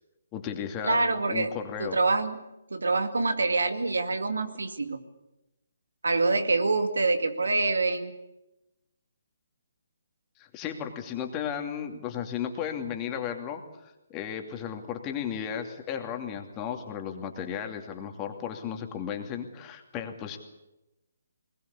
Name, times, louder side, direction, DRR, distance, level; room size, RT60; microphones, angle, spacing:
voice 1, 0.3-2.0 10.4-20.4, left 8 dB, 20° left, 4 dB, 2.6 m, -35 dB
voice 2, 0.8-1.5 1.8-5.0 6.0-8.2, right 3 dB, 75° right, 8 dB, 2.3 m, -26 dB
21.5 x 20.5 x 8.5 m, 0.96 s
figure-of-eight pair, 140°, 0 cm